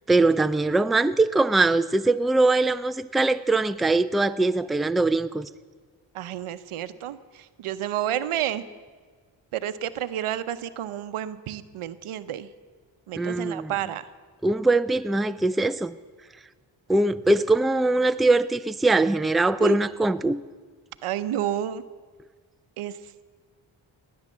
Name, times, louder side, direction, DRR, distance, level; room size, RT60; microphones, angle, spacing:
voice 1, 0.1-5.5 13.2-13.7 14.4-15.9 16.9-20.4, right 2 dB, ahead, 0.4 m, -22 dB
voice 2, 6.1-8.6 9.5-12.5 13.1-14.1 19.6-19.8 21.0-21.8 22.8-23.3, right 11 dB, 85° right, 0.8 m, -30 dB
18.5 x 9.6 x 7.3 m
cardioid pair, 60°, 49 cm